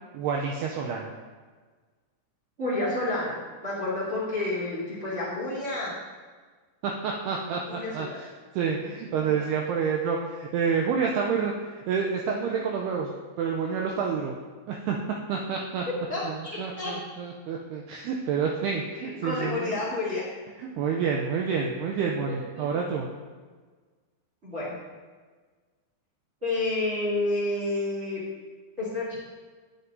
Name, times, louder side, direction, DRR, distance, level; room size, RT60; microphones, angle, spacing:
voice 1, 0.1-1.1 6.8-8.3 8.5-13.1 13.4-14.3 14.7-15.0 15.3-15.9 16.2-19.8 20.6-23.1, right 6 dB, 90° right, 0 dB, 2.3 m, -28 dB
voice 2, 2.6-3.4 3.6-5.9 7.7-8.2 16.1-16.9 19.0-20.2 22.3-22.7 24.4-24.8 26.4-28.2 28.8-29.2, left 2 dB, 30° right, -8 dB, 1.3 m, -30 dB
9.9 x 8.1 x 2.7 m, 1.5 s
omnidirectional pair, 5.3 m